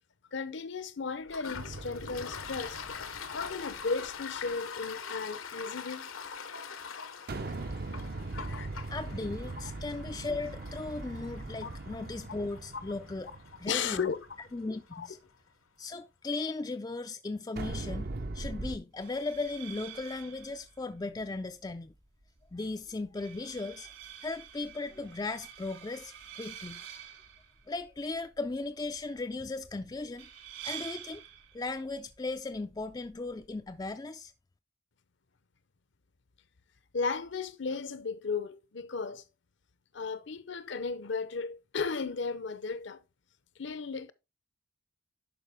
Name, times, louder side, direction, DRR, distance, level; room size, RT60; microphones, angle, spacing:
voice 1, 0.3-2.8 3.3-6.1 8.3-8.7 11.6-11.7 12.7-12.8 13.7-14.3 14.9-15.1 36.9-39.2 39.9-43.0 43.6-44.1, left 5 dB, 60° left, 0.7 m, -35 dB
Toilet flush, 1.2-14.6, left 6 dB, 80° left, 1.0 m, -44 dB
sound 1, 1.5-4.1 7.3-14.5 17.6-18.8, right 2 dB, 45° right, 0.6 m, -40 dB
voice 2, 8.9-13.3 13.6-14.1 14.5-15.2 15.8-18.1 18.3-21.9 22.5-23.9 24.2-26.8 27.7-30.3 30.6-31.2 31.5-34.3, left 3 dB, 20° left, 0.3 m, -37 dB
sound 2, 18.9-33.9, right 10 dB, 60° right, 1.8 m, -49 dB
11.0 x 5.1 x 3.4 m
head